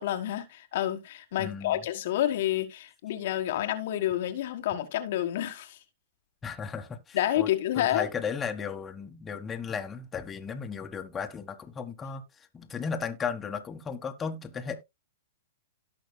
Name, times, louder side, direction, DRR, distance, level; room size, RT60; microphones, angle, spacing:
voice 1, 0.0-5.8 7.1-8.1, left 12 dB, 60° left, 1.4 m, -29 dB
voice 2, 1.4-1.8 6.4-7.5 7.8-12.2 12.5-14.8, left 6 dB, 20° left, 1.4 m, -35 dB
17.5 x 5.8 x 2.2 m
hypercardioid pair, 115°, 0 cm